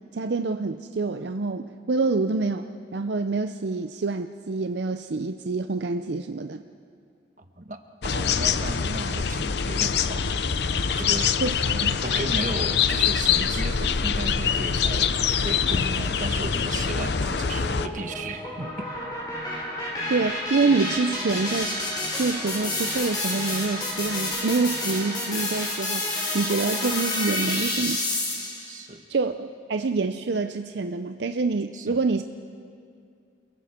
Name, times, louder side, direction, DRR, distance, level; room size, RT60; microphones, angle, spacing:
voice 1, 0.1-6.6 11.1-12.0 20.1-21.8 22.1-28.0 29.1-32.2, right 3 dB, 70° right, 8 dB, 0.5 m, -26 dB
voice 2, 7.4-10.4 10.9-11.3 12.0-18.9 28.7-29.0 31.7-32.0, right 2 dB, 45° right, 6 dB, 1.3 m, -35 dB
sound 1, 8.0-17.9, left 6 dB, 65° left, 0.6 m, -24 dB
sound 2, 17.6-28.7, left 1 dB, 20° left, 3.3 m, -29 dB
28.5 x 21.5 x 4.4 m, 2.3 s
head